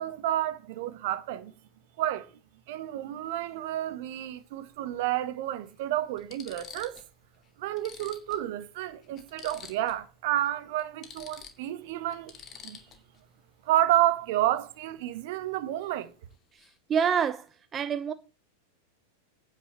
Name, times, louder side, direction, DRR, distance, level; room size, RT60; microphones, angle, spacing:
voice 1, 0.0-1.5 2.0-2.3 2.7-7.0 7.6-12.3 12.6-12.8 13.7-16.1, right 13 dB, 50° right, 1.2 m, -30 dB
sound 1, 3.2-3.4 4.9-5.0 5.7-5.8 6.2-7.1 7.4-7.5 7.8-10.1 10.3-10.5 10.8-13.2 15.8-16.0 16.3-16.8, left 7 dB, 25° left, 2.5 m, -49 dB
voice 2, 16.5-17.5 17.7-18.1, right 7 dB, 25° right, 0.6 m, -27 dB
9.8 x 5.9 x 7.8 m
figure-of-eight pair, 90°, 0 cm